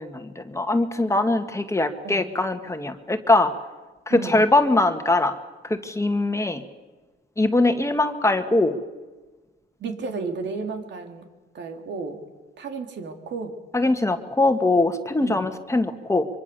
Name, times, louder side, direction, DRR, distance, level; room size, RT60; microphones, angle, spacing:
voice 1, 0.0-3.5 4.1-5.3 5.6-6.6 7.4-8.8 13.7-16.3, left 2 dB, 15° left, 7 dB, 1.9 m, -22 dB
voice 2, 4.1-4.5 9.8-11.3 11.5-12.2 12.6-13.6 15.2-15.5, right 4 dB, 65° right, 4 dB, 3.8 m, -33 dB
24.5 x 24.5 x 7.1 m, 1.2 s
cardioid pair, 90°, 20 cm